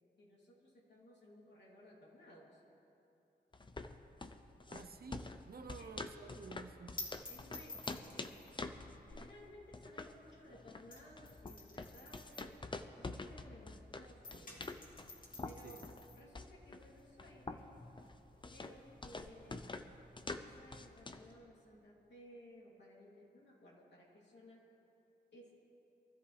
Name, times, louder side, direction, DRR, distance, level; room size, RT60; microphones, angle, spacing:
voice 1, 0.2-2.6 5.6-5.9 7.3-8.3 8.9-12.6 13.0-14.8 15.4-15.8 16.1-17.7 18.4-19.7 20.3-24.7 25.3-25.5, equal, 75° left, 3.0 m, -59 dB
sound 1, 3.5-21.3, left 3 dB, 25° left, 0.6 m, -47 dB
voice 2, 4.7-7.1 15.6-15.8, right 5 dB, 60° right, 0.7 m, -52 dB
sound 2, 4.9-13.8 14.1-21.3, left 3 dB, 50° left, 2.3 m, -54 dB
23.5 x 13.5 x 3.3 m
wide cardioid pair, 105°, 18 cm